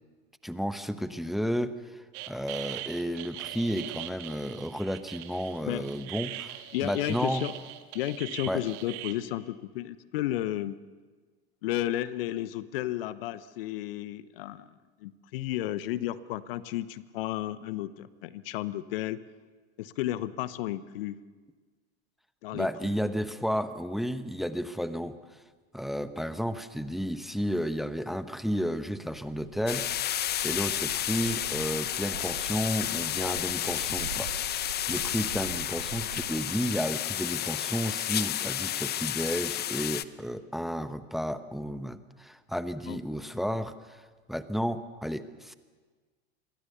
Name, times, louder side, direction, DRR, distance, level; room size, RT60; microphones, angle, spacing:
voice 1, 0.4-7.4 8.5-8.6 22.5-25.2 25.7-44.0 44.3-45.5, equal, ahead, 12 dB, 1.1 m, -32 dB
sound 1, 2.1-9.1, right 14 dB, 55° right, 2.0 m, -41 dB
voice 2, 6.7-7.5 7.9-10.8 11.6-14.7 15.0-19.2 19.8-21.2 22.4-22.9 32.9-33.0 42.9-43.0, left 14 dB, 60° left, 16 dB, 1.0 m, -33 dB
Bird, 29.1-36.4, right 9 dB, 80° right, 1.2 m, -44 dB
sound 2, 29.7-40.0, left 12 dB, 30° left, 0.9 m, -31 dB
27.0 x 22.5 x 6.9 m, 1.4 s
figure-of-eight pair, 80°, 32 cm